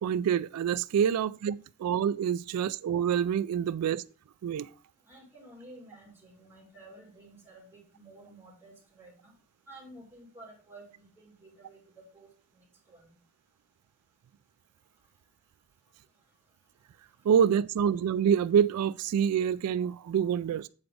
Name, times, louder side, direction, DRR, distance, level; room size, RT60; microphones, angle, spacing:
voice 1, 0.0-4.0 4.4-4.7 17.2-20.7, right 8 dB, 90° right, 0.3 m, -26 dB
voice 2, 5.1-9.3 9.7-12.3 12.9-13.1, right 1 dB, 10° right, 3.2 m, -52 dB
8.0 x 4.8 x 4.9 m
head